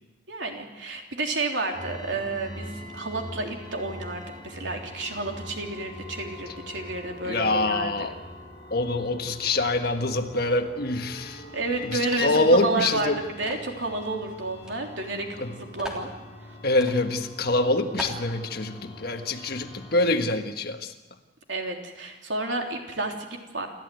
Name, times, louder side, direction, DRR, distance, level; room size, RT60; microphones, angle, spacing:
voice 1, 0.3-8.1 11.5-16.1 21.5-23.7, right 2 dB, 85° right, 2 dB, 3.5 m, -31 dB
sound 1, 1.7-20.2, left 1 dB, 25° left, 4.2 m, -43 dB
voice 2, 7.2-8.2 8.7-11.4 11.8-13.2 15.4-15.5 16.6-20.9, left 2 dB, 55° left, 6 dB, 1.6 m, -25 dB
sound 2, 13.4-13.7 14.6-14.7 15.0-15.1 15.8-16.1 16.8-17.0 17.4-17.5 18.0-18.3, left 1 dB, 5° right, 3.2 m, -36 dB
28.5 x 13.5 x 9.4 m, 1.1 s
head